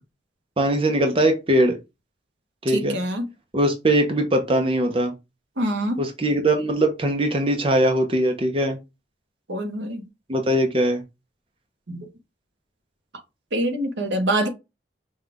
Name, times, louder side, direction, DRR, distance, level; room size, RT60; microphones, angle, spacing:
voice 1, 0.6-1.8 2.6-3.0 3.5-5.1 6.0-8.8 10.3-11.0, right 1 dB, 30° right, 0.7 m, -21 dB
voice 2, 2.7-3.2 5.6-6.0 9.5-10.0 11.9-12.1 13.5-14.5, right 1 dB, 80° right, 1.0 m, -25 dB
5.5 x 2.4 x 3.5 m
head